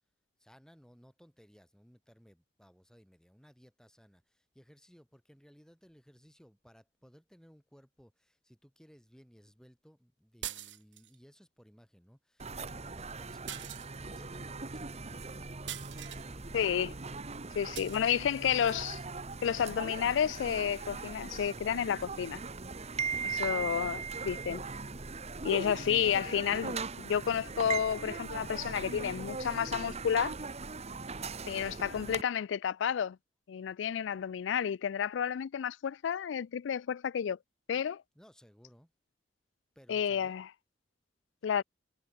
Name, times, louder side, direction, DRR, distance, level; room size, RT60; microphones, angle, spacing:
voice 1, 0.4-13.7 14.1-15.3 16.2-16.6 17.6-18.2 23.3-23.9 38.1-38.9 39.8-40.3, equal, 5° left, 7.3 m, -60 dB
sound 1, 10.4-11.2 13.5-14.3 15.7-16.3 17.7-18.0, right 12 dB, 80° right, 3.0 m, -42 dB
sound 2, 12.4-32.2, right 4 dB, 35° right, 1.4 m, -39 dB
voice 2, 16.5-16.9 17.5-19.0 19.4-22.4 23.2-24.0 24.3-24.6 25.4-30.3 31.5-33.2 33.5-37.4 37.7-38.0 39.9-40.5 41.4-41.6, left 8 dB, 80° left, 0.4 m, -31 dB
head